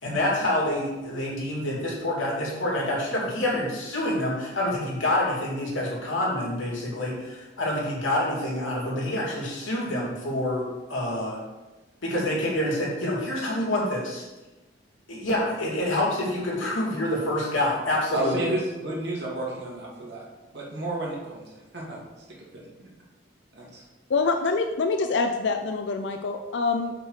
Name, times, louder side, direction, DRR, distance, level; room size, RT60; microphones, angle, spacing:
voice 1, 0.0-11.4 12.0-14.2 15.1-18.4, left 1 dB, 80° left, -4 dB, 2.8 m, -27 dB
voice 2, 18.1-20.2 20.5-22.0 22.4-22.9 23.5-23.8, right 1 dB, 55° right, -3 dB, 2.2 m, -32 dB
voice 3, 24.1-26.9, left 4 dB, 60° left, 6 dB, 0.4 m, -25 dB
6.5 x 5.9 x 4.8 m, 1.1 s
head